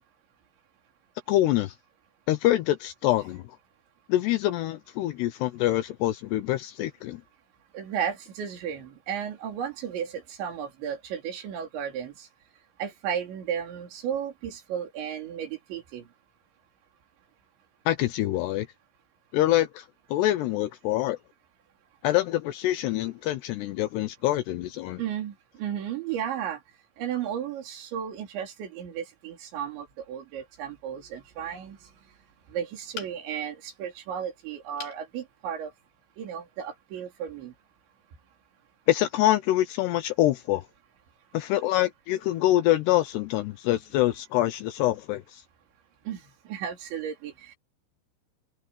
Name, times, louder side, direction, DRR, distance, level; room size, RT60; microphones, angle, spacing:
voice 1, 1.3-1.7 2.3-3.4 4.1-7.2 17.9-18.7 19.3-19.9 20.1-21.2 22.0-25.0 38.9-40.6 41.3-45.4, left 15 dB, 80° left, 2.4 m, -25 dB
voice 2, 7.7-12.3 12.8-16.1 25.0-26.6 27.0-31.8 32.5-35.7 36.2-37.5 46.1-47.6, right 8 dB, 65° right, 5.8 m, -34 dB
sound 1, 32.9-33.5 34.8-35.1 35.6-35.7 36.1-36.2, left 7 dB, 55° left, 4.9 m, -41 dB
omnidirectional pair, 5.6 m